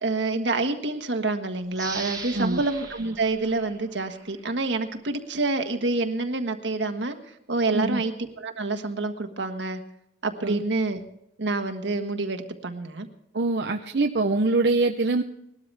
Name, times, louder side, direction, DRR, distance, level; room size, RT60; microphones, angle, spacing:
voice 1, 0.0-7.1 7.5-9.8 10.2-11.0 11.4-13.1, right 3 dB, 90° right, 6 dB, 1.5 m, -27 dB
sound 1, 1.7-4.4 4.9-5.0, right 4 dB, 20° right, 1.4 m, -39 dB
voice 2, 7.7-8.0 10.4-10.6 13.3-15.2, right 3 dB, 65° right, 4 dB, 0.7 m, -24 dB
20.0 x 12.5 x 3.4 m, 0.79 s
head